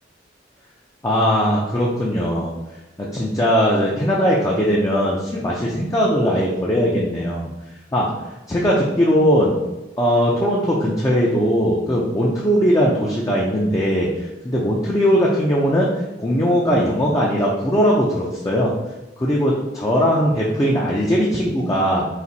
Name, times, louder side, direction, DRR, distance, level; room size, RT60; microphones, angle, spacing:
voice 1, 1.0-2.5 3.0-7.5 7.9-8.1 8.5-9.6 10.0-18.8 19.2-22.1, equal, 20° left, -4 dB, 0.5 m, -19 dB
4.1 x 2.6 x 4.0 m, 1.0 s
head